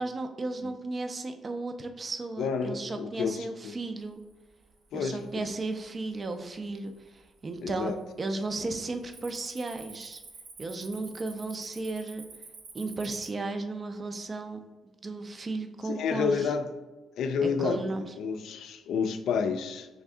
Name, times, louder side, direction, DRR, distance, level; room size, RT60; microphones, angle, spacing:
voice 1, 0.0-4.2 4.9-7.9 8.2-10.2 10.6-12.3 12.7-14.6 15.0-16.5 17.4-18.1, right 3 dB, 35° right, 7 dB, 0.4 m, -34 dB
voice 2, 2.4-3.8 4.9-5.4 7.6-8.0 15.8-16.7 17.2-19.9, left 5 dB, 75° left, 8 dB, 0.4 m, -30 dB
Cricket, 4.3-4.7 5.2-5.6 6.2-6.3 6.9-7.5 7.8-8.1 8.4-13.3, right 4 dB, 80° right, 0.7 m, -48 dB
3.4 x 2.6 x 3.4 m, 1.2 s
cardioid pair, 90°, 0 cm